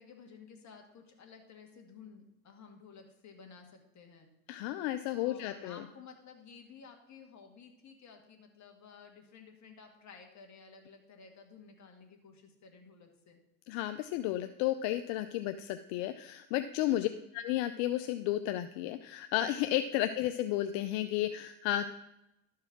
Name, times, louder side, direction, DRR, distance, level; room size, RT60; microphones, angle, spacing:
voice 1, 0.0-4.3 5.2-13.4 16.9-17.3, left 5 dB, 40° left, 3 dB, 2.1 m, -54 dB
voice 2, 4.5-5.8 13.7-17.1 17.3-21.9, left 13 dB, 70° left, 10 dB, 0.6 m, -32 dB
12.0 x 4.7 x 6.0 m, 0.87 s
supercardioid pair, 90°, 44 cm